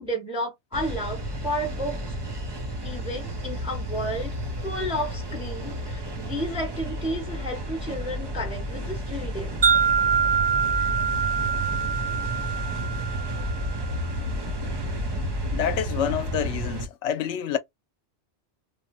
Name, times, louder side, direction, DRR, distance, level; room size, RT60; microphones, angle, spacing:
voice 1, 0.0-2.0 2.8-4.3 4.6-9.6, equal, 5° right, 0.8 m, -32 dB
sound 1, 0.7-16.9, right 1 dB, 30° right, 0.5 m, -31 dB
Wind chime, 9.6-13.9, right 6 dB, 55° right, 1.1 m, -25 dB
voice 2, 15.5-17.6, left 8 dB, 85° left, 0.9 m, -27 dB
3.1 x 2.0 x 2.7 m
omnidirectional pair, 1.2 m